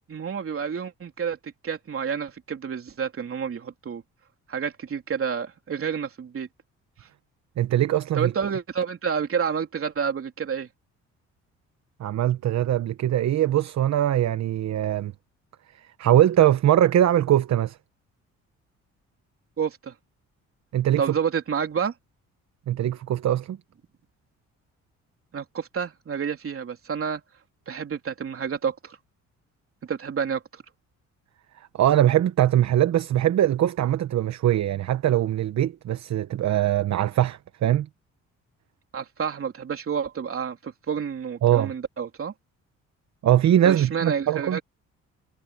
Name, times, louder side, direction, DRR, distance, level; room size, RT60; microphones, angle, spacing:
voice 1, 0.1-4.0 4.5-6.5 8.2-10.7 19.6-19.9 21.0-21.9 25.3-27.2 27.7-29.0 29.9-30.6 38.9-42.3 43.6-44.6, right 7 dB, 45° right, 3.5 m, -29 dB
voice 2, 7.6-8.3 12.0-15.1 16.0-17.8 20.7-21.0 22.7-23.6 31.7-37.9 41.4-41.7 43.2-44.6, right 12 dB, 65° right, 1.1 m, -21 dB
cardioid pair, 90°, 30 cm